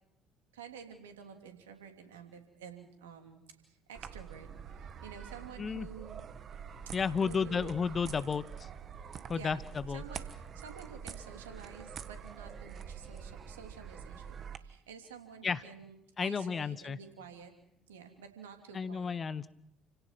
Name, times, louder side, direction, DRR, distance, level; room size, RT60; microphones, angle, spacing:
voice 1, 0.5-3.4 3.7-4.5 4.8-6.2 7.2-7.8 9.3-9.6 9.9-17.5 17.9-19.2, right 7 dB, 80° right, 5 dB, 3.0 m, -50 dB
sound 1, 3.9-14.6, right 7 dB, 45° right, 1.6 m, -46 dB
voice 2, 6.9-8.7 9.3-10.0 15.4-15.6 16.2-17.0 18.7-19.5, left 5 dB, 35° left, 16 dB, 1.1 m, -32 dB
30.0 x 17.5 x 6.0 m, 0.79 s
figure-of-eight pair, 55°, 0 cm